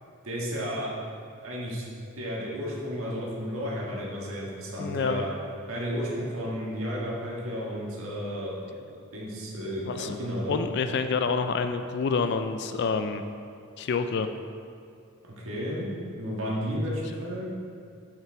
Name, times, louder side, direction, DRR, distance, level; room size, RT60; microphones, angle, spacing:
voice 1, 0.2-0.9 1.4-1.8 2.2-5.3 5.7-10.6 15.2-17.5, equal, 75° right, -5 dB, 1.6 m, -33 dB
voice 2, 4.8-5.2 9.9-10.2 10.5-13.2 13.8-14.3, left 5 dB, 55° left, 9 dB, 0.3 m, -27 dB
7.5 x 5.8 x 4.5 m, 2.3 s
head